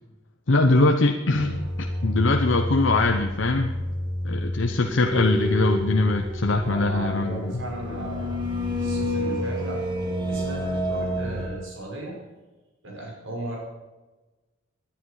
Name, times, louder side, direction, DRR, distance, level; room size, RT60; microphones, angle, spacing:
voice 1, 0.5-3.7 4.2-7.5, left 2 dB, 65° left, 3 dB, 0.9 m, -22 dB
sound 1, 1.3-11.5, left 1 dB, 25° right, 2.3 m, -29 dB
voice 2, 6.6-8.4 8.7-9.8 10.3-12.2 12.8-13.6, right 1 dB, 85° right, -2 dB, 5.6 m, -36 dB
19.5 x 11.0 x 4.9 m, 1.2 s
head